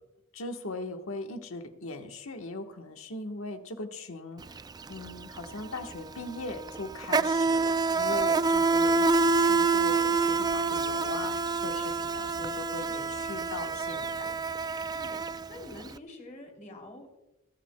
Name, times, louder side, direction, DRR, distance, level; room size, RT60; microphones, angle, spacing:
voice 1, 0.3-4.6 4.9-14.3, left 2 dB, 75° left, 5 dB, 1.3 m, -39 dB
Insect, 4.4-4.6 4.9-15.9, right 3 dB, 20° right, 0.3 m, -27 dB
voice 2, 14.9-17.1, left 1 dB, 40° left, 1 dB, 3.0 m, -47 dB
28.0 x 9.5 x 2.3 m, 0.95 s
head